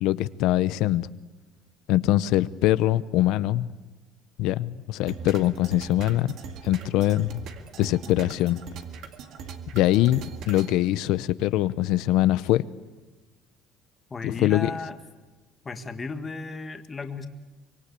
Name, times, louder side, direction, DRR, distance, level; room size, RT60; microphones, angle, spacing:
voice 1, 0.0-1.1 1.9-3.7 4.4-6.3 6.6-7.4 7.8-8.6 9.7-12.7 14.2-14.7, left 15 dB, 75° left, 16 dB, 0.8 m, -23 dB
sound 1, 5.1-10.7, right 6 dB, 60° right, 2.0 m, -40 dB
voice 2, 14.1-15.0 15.7-17.3, left 3 dB, 20° left, 7 dB, 1.7 m, -34 dB
24.5 x 23.5 x 8.4 m, 1.2 s
cardioid pair, 135°, 0 cm